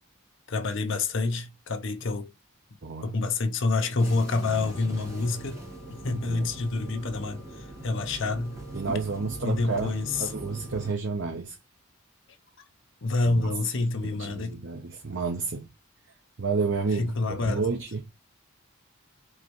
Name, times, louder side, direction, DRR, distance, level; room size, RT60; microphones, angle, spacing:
voice 1, 0.5-2.3 3.0-5.6 5.9-8.6 9.4-10.3 13.0-14.6 17.0-17.6, left 3 dB, 60° left, 0.7 m, -28 dB
voice 2, 2.8-3.2 6.1-6.6 8.7-9.9 10.2-11.6 13.2-13.5 14.0-15.7 16.4-18.0, right 4 dB, 55° right, 0.8 m, -30 dB
sound 1, 4.0-10.9, right 1 dB, 15° right, 1.4 m, -40 dB
4.7 x 3.1 x 3.1 m
head